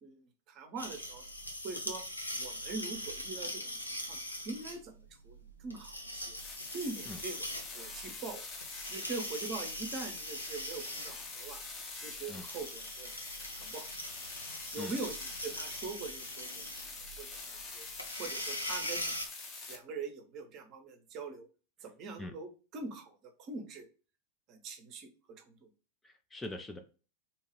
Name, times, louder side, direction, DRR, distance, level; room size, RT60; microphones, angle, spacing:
voice 1, 0.5-1.2 1.6-2.0 2.4-3.7 4.1-4.2 4.4-4.9 5.2-5.3 5.6-6.4 6.7-7.4 7.7-8.4 8.9-11.6 11.9-13.1 13.6-13.9 14.7-16.6 17.2-17.3 17.7-17.8 18.2-19.1 19.7-21.5 21.8-23.9 24.5-25.1, right 4 dB, 35° right, 5 dB, 0.7 m, -42 dB
sound 1, 0.8-19.3, left 1 dB, 85° left, 0.5 m, -42 dB
sound 2, 6.3-19.7, left 3 dB, 30° left, 0.7 m, -45 dB
voice 2, 26.0-26.8, left 2 dB, 10° left, 4 dB, 0.3 m, -42 dB
2.8 x 2.3 x 3.0 m, 0.34 s
figure-of-eight pair, 90°, 0 cm